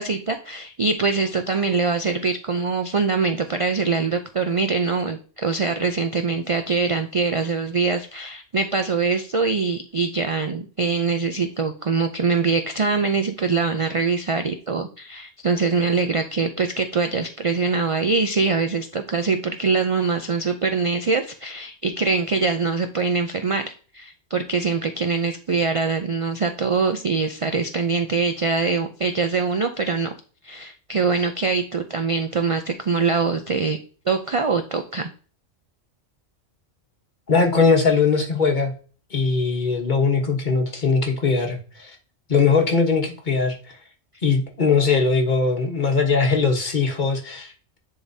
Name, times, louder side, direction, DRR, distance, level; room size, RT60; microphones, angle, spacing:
voice 1, 0.0-30.1 30.4-33.8 34.1-35.1, right 4 dB, 60° right, 6 dB, 0.3 m, -23 dB
voice 2, 37.3-38.7 39.1-42.0 42.3-43.8 44.2-47.8, left 4 dB, 40° left, 2 dB, 1.3 m, -20 dB
10.0 x 3.8 x 2.7 m, 0.39 s
omnidirectional pair, 1.3 m